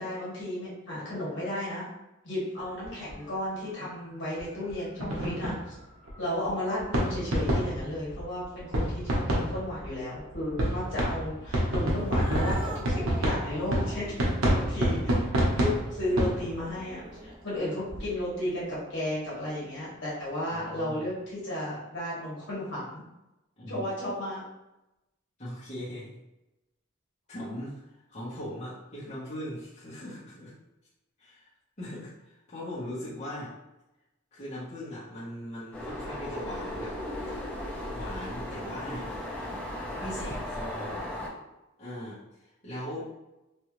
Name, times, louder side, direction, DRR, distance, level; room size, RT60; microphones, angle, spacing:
voice 1, 0.0-1.8 2.2-5.7 6.2-14.2 14.5-23.0 23.7-24.4, left 1 dB, 60° left, -8 dB, 1.5 m, -34 dB
sound 1, 2.6-3.1 4.4-4.5 4.7-4.8 5.0-17.2 17.9-18.2, equal, 85° right, 1.0 m, -29 dB
Cat, 11.9-17.6, right 1 dB, 25° right, 0.4 m, -45 dB
voice 2, 20.5-21.1 23.6-23.9 25.4-26.1 27.3-30.5 31.2-31.5 31.8-33.5 34.3-37.0 37.9-39.1 39.9-41.1 41.8-43.1, left 1 dB, 35° left, -11 dB, 1.2 m, -39 dB
sound 2, 35.7-41.3, left 1 dB, 5° left, 0.7 m, -36 dB
3.1 x 2.7 x 3.1 m, 0.95 s
head